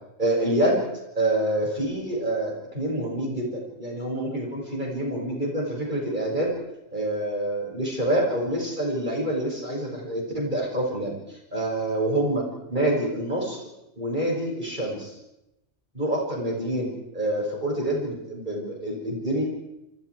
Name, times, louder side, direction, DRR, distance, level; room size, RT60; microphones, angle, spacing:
voice 1, 0.2-0.8 1.1-6.5 6.9-13.6 14.0-15.1 15.9-19.4, right 1 dB, 35° right, -1 dB, 6.6 m, -27 dB
29.5 x 28.0 x 4.8 m, 0.92 s
omnidirectional pair, 1.4 m